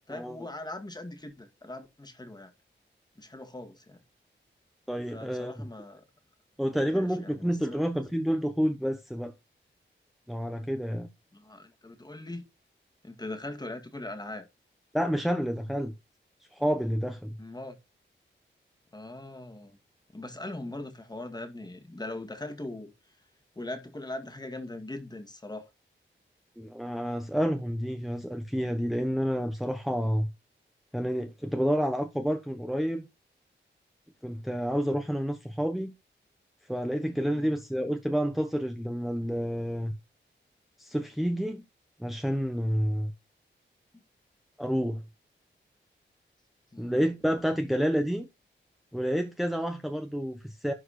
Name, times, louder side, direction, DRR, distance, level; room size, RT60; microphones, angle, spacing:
voice 1, 0.1-2.5 3.2-4.0 5.1-6.1 6.7-7.8 11.3-12.4 13.0-14.5 17.4-17.8 18.9-19.8 20.1-22.9 23.6-25.6 37.3-37.5 46.7-47.0, left 2 dB, 20° left, 2.0 m, -40 dB
voice 2, 4.9-5.6 6.6-9.3 10.3-11.1 14.9-15.9 16.5-17.4 26.6-30.3 30.9-33.0 34.2-35.9 36.7-39.9 40.8-41.6 42.0-43.1 44.6-45.0 46.8-48.3 48.9-50.7, equal, ahead, 1.2 m, -29 dB
11.5 x 4.7 x 4.3 m
cardioid pair, 75°, 20 cm